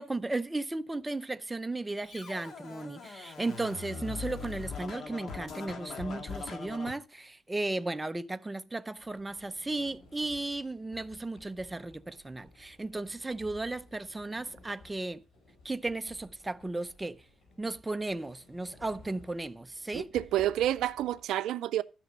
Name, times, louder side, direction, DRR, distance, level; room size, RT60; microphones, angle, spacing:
voice 1, 0.0-15.2 15.6-17.2 17.6-20.1, right 2 dB, 15° right, 0.5 m, -35 dB
Scratching (performance technique), 2.1-6.9, left 5 dB, 60° left, 2.1 m, -41 dB
Sliding door, 9.0-21.2, left 2 dB, 85° left, 5.6 m, -57 dB
voice 2, 19.9-21.8, right 13 dB, 85° right, 0.4 m, -29 dB
12.5 x 6.0 x 5.2 m
cardioid pair, 90°, 0 cm